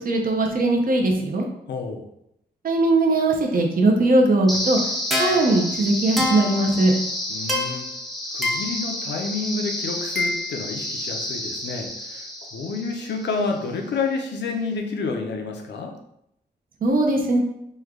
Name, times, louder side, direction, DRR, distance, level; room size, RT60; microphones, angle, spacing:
voice 1, 0.0-1.5 2.6-4.8 5.2-6.9 16.8-17.4, right 2 dB, 55° right, 1 dB, 0.6 m, -20 dB
voice 2, 1.7-2.1 7.3-7.9 8.3-16.0, left 4 dB, 85° left, 3 dB, 0.6 m, -29 dB
sound 1, 4.5-13.5, left 1 dB, ahead, 0.6 m, -28 dB
3.1 x 2.3 x 3.6 m, 0.79 s
wide cardioid pair, 150°, 18 cm